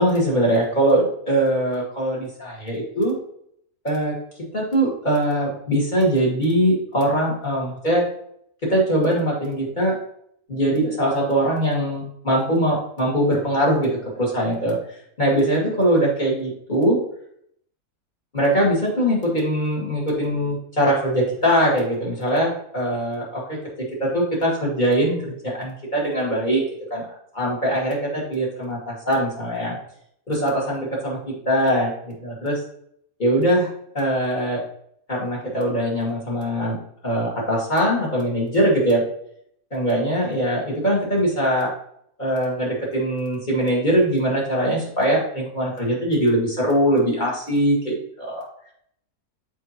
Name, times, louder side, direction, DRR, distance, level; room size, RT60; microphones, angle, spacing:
voice 1, 0.0-3.2 3.8-4.2 4.5-8.0 8.6-10.0 10.5-14.8 15.2-17.0 18.3-23.6 24.0-26.6 26.9-27.0 27.3-29.8 30.3-32.6 33.2-33.7 33.9-34.6 35.1-36.8 37.0-39.0 39.7-41.7 42.2-48.5, right 1 dB, 30° left, -4 dB, 2.1 m, -22 dB
7.0 x 4.8 x 2.9 m, 0.69 s
omnidirectional pair, 1.6 m